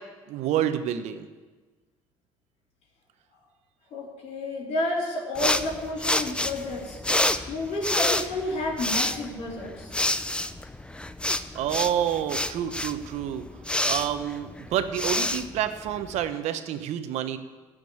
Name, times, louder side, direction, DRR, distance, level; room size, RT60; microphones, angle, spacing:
voice 1, 0.3-1.3 11.5-13.4 13.8-17.4, right 10 dB, 70° right, 9 dB, 1.0 m, -28 dB
voice 2, 3.9-7.0 7.5-9.9, left 1 dB, 60° left, -6 dB, 3.6 m, -31 dB
sound 1, 5.3-16.3, left 1 dB, 10° left, 0.6 m, -28 dB
15.0 x 5.2 x 8.8 m, 1.3 s
supercardioid pair, 75°, 12 cm